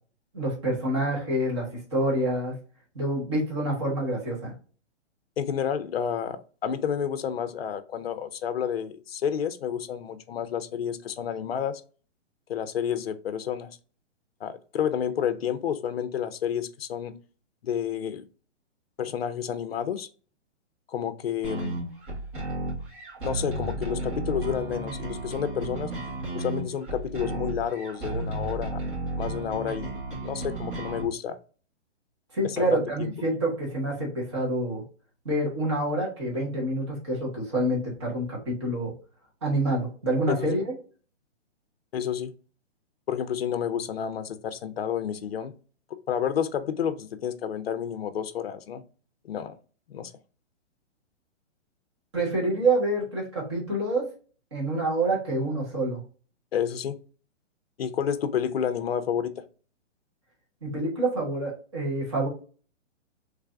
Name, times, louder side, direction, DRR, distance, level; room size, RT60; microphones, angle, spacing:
voice 1, 0.3-2.6 2.9-4.5 32.3-34.8 35.2-38.9 39.4-40.7 52.1-54.1 54.5-56.0 60.6-62.3, right 1 dB, 25° right, 0.9 m, -27 dB
voice 2, 5.4-11.8 12.5-13.7 14.4-17.1 17.6-18.3 19.0-20.1 20.9-21.8 23.2-25.9 26.3-28.8 29.2-30.0 30.2-31.4 32.4-33.1 40.3-40.6 41.9-42.3 43.1-45.5 45.9-48.8 49.2-49.6 49.9-50.1 56.5-57.0 57.8-59.4, left 8 dB, 55° left, 0.5 m, -30 dB
sound 1, 21.4-31.0, right 2 dB, 45° right, 1.6 m, -33 dB
3.3 x 2.5 x 3.4 m
hypercardioid pair, 180°, 36 cm